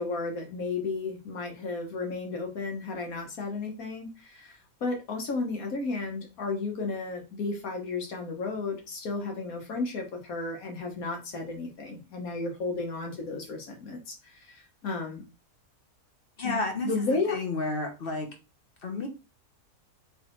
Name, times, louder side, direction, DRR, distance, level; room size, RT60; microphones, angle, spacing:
voice 1, 0.0-15.2 16.4-17.4, left 3 dB, 70° left, 3 dB, 1.5 m, -33 dB
voice 2, 16.4-18.3 18.8-19.1, left 2 dB, 45° left, 3 dB, 0.9 m, -31 dB
4.3 x 3.3 x 3.0 m, 0.30 s
omnidirectional pair, 1.6 m